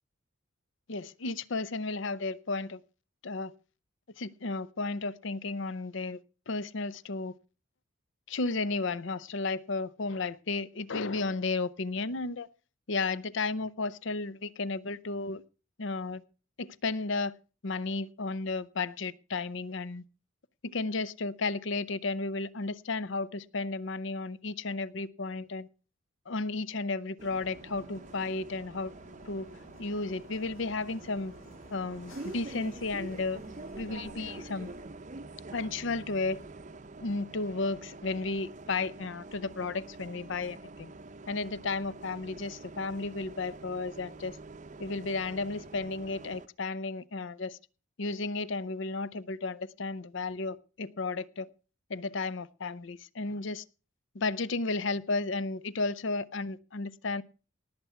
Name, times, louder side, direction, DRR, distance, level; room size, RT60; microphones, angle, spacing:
voice 1, 0.9-2.8 3.2-3.5 4.2-6.2 6.5-7.4 8.3-12.5 12.9-15.4 15.8-16.2 16.6-17.3 17.6-20.0 20.6-25.7 26.3-28.9 29.2-29.5 29.8-31.3 31.7-33.4 33.8-34.7 35.5-36.4 37.0-40.9 41.3-44.4 44.8-47.6 48.0-51.5 51.9-53.6 54.1-57.2, left 3 dB, 60° left, 0.6 m, -33 dB
Bus, 27.2-46.5, right 3 dB, 35° right, 0.6 m, -46 dB
sound 1, 27.4-34.9, left 1 dB, 80° left, 7.3 m, -54 dB
18.5 x 8.1 x 5.7 m
head